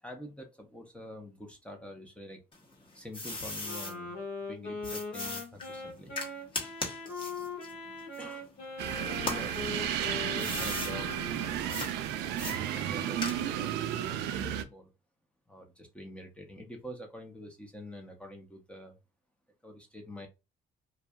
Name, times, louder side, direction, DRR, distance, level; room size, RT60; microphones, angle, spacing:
voice 1, 0.0-2.4 2.9-4.2 4.4-6.1 8.2-8.5 8.9-9.6 10.1-11.1 11.5-12.1 12.4-14.9 15.5-19.0 19.6-20.3, left 1 dB, 5° left, 0.6 m, -46 dB
sound 1, 2.5-3.9 4.8-8.7 9.2-10.9 11.7-11.9 12.4-13.7, left 2 dB, 30° left, 0.9 m, -38 dB
Wind instrument woodwind instrument, 3.6-11.9, left 3 dB, 70° left, 1.4 m, -41 dB
sound 2, 8.8-14.6, right 10 dB, 90° right, 0.4 m, -33 dB
2.6 x 2.2 x 2.2 m
cardioid pair, 110°, 17 cm